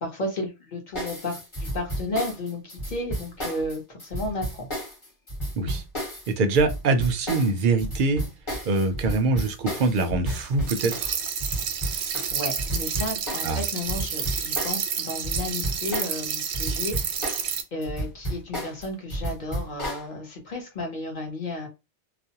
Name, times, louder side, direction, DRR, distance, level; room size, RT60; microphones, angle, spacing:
voice 1, 0.0-4.7 11.9-21.7, left 1 dB, 45° left, 0.9 m, -33 dB
sound 1, 0.9-16.3 16.5-20.1, right 1 dB, 25° left, 1.1 m, -32 dB
voice 2, 6.3-8.2 8.6-11.2 13.4-13.6, right 3 dB, 60° right, 0.6 m, -24 dB
sound 2, 10.7-17.6, right 7 dB, 80° right, 0.9 m, -30 dB
2.4 x 2.0 x 2.8 m
omnidirectional pair, 1.2 m